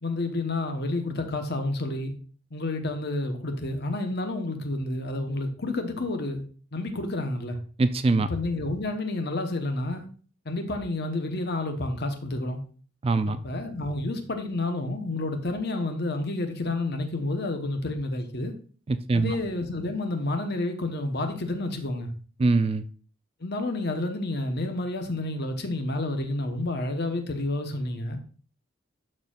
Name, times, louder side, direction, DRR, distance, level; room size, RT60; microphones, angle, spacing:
voice 1, 0.0-2.1 2.5-6.4 6.7-7.6 8.3-10.1 10.4-12.6 13.4-18.5 19.1-22.1 23.4-28.2, left 2 dB, 55° left, 1.1 m, -30 dB
voice 2, 7.8-8.3 13.0-13.4 18.9-19.3 22.4-22.8, right 3 dB, 30° right, 0.4 m, -23 dB
12.0 x 4.4 x 2.4 m
head